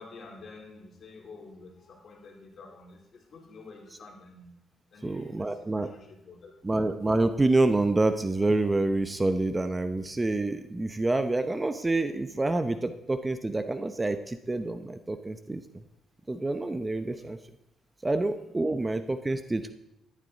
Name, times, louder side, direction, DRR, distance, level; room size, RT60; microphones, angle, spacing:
voice 1, 0.0-4.5 4.9-5.5 5.8-6.5 18.1-18.2, left 3 dB, 55° left, 0 dB, 3.6 m, -48 dB
voice 2, 5.0-5.9 6.6-15.6 16.3-17.4 18.0-19.7, right 2 dB, 20° right, 10 dB, 0.7 m, -27 dB
13.0 x 11.0 x 4.0 m, 0.83 s
cardioid pair, 90°, 0 cm